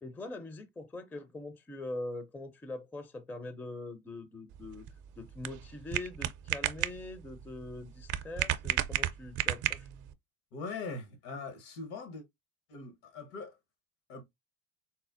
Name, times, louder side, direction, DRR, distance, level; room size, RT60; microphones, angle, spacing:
voice 1, 0.0-4.8 5.2-9.9, left 2 dB, 5° left, 0.4 m, -43 dB
sound 1, 4.5-10.1, right 13 dB, 50° right, 0.5 m, -34 dB
voice 2, 10.5-12.2 12.7-13.6 14.1-14.2, left 4 dB, 65° left, 1.2 m, -41 dB
4.2 x 2.0 x 2.5 m
hypercardioid pair, 75°, 41 cm